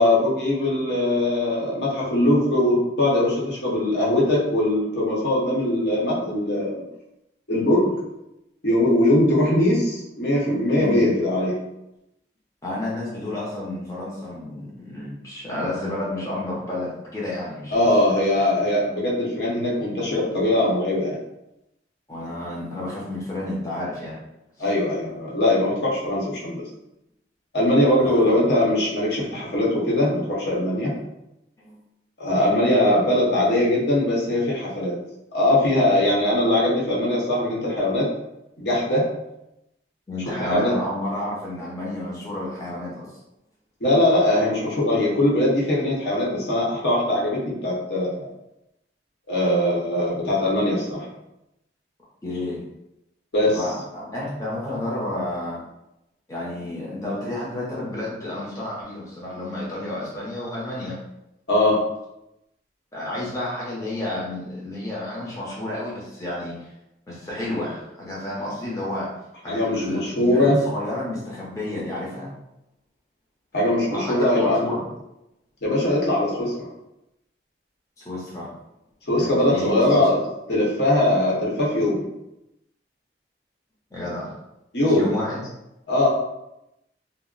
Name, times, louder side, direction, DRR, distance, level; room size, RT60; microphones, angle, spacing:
voice 1, 0.0-6.8 7.5-7.9 8.6-11.5 17.7-21.2 24.6-26.6 27.5-30.9 32.2-34.9 35.3-38.1 38.6-39.1 40.4-40.7 43.8-48.2 49.3-51.1 53.3-53.6 61.5-61.8 69.5-70.6 73.5-74.6 75.6-76.7 79.1-80.2 80.5-82.1 84.7-85.1 85.9-86.1, left 1 dB, 65° left, -5 dB, 0.9 m, -21 dB
voice 2, 10.8-11.1 12.6-18.0 22.1-24.2 28.0-28.3 31.6-31.8 32.9-33.0 40.1-43.1 52.2-52.6 53.5-55.6 56.3-61.0 62.9-66.7 67.1-69.1 69.4-72.3 73.9-74.9 78.0-78.5 79.2-80.1 83.9-84.3 84.8-85.5, left 1 dB, 20° left, -6 dB, 0.6 m, -31 dB
2.3 x 2.0 x 3.7 m, 0.89 s
head